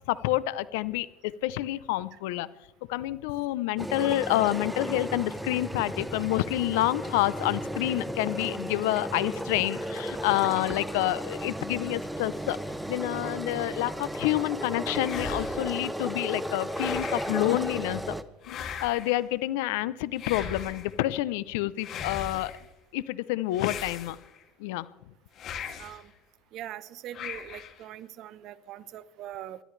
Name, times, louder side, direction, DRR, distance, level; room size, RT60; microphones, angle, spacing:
voice 1, 0.1-2.5 2.9-12.6 12.9-18.2 18.5-22.5 22.9-24.2 24.6-24.9, left 16 dB, 80° left, 17 dB, 0.6 m, -28 dB
sound 1, 3.8-18.2, right 1 dB, 5° right, 1.0 m, -34 dB
sound 2, 15.0-15.8 16.7-17.5 18.4-19.2 20.2-21.0 21.8-22.6 23.5-24.4 25.4-26.0 27.1-27.8, left 7 dB, 55° left, 2.4 m, -38 dB
voice 2, 25.8-26.1 26.5-29.6, right 12 dB, 60° right, 15 dB, 0.9 m, -42 dB
29.0 x 13.0 x 3.3 m, 0.99 s
supercardioid pair, 90°, 0 cm